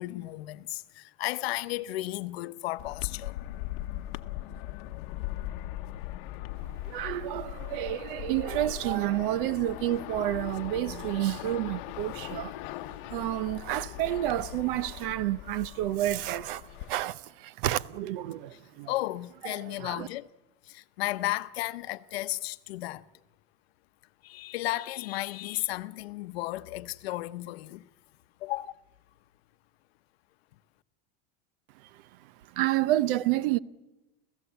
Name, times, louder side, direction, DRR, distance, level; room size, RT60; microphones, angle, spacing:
voice 1, 0.0-3.4 18.5-18.6 18.9-20.3 20.6-23.0 24.2-27.8 28.4-28.7, left 17 dB, 85° left, 0.9 m, -34 dB
sound 1, 2.8-16.9, left 15 dB, 55° left, 0.9 m, -39 dB
voice 2, 6.9-12.6 13.1-18.9 19.4-20.1 32.5-33.6, right 14 dB, 60° right, 0.8 m, -30 dB
28.5 x 15.0 x 8.1 m
supercardioid pair, 170°, 30 cm